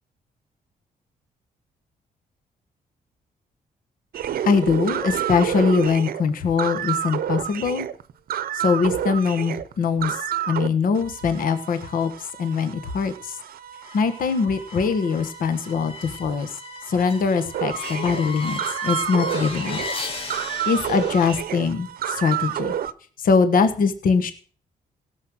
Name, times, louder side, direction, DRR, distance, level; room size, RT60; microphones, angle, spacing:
sound 1, 4.1-10.7 11.0-22.9, right 10 dB, 70° right, 0.8 m, -30 dB
voice 1, 4.4-7.9 8.5-10.2 10.5-12.1 12.4-13.3 13.9-16.5 16.9-19.8 20.7-22.7 23.2-24.3, left 5 dB, 65° left, 9 dB, 1.3 m, -22 dB
sound 2, 13.7-21.4, left 2 dB, 35° left, 2.3 m, -35 dB
17.0 x 6.6 x 6.4 m, 0.41 s
cardioid pair, 115°, 16 cm